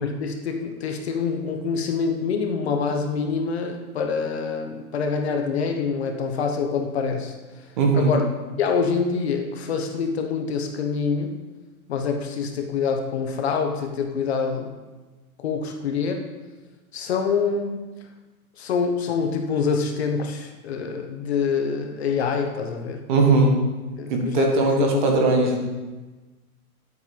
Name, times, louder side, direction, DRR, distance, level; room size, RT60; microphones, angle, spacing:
voice 1, 0.0-7.3 7.9-8.3 8.6-11.4 11.9-14.7 15.4-16.3 16.9-17.9 18.6-23.0 24.0-25.0, left 5 dB, 45° left, 4 dB, 1.1 m, -26 dB
voice 2, 7.8-8.1 23.1-23.5 24.1-25.6, right 3 dB, 30° right, 2 dB, 1.5 m, -19 dB
10.5 x 8.2 x 5.2 m, 1.2 s
hypercardioid pair, 170°, 45 cm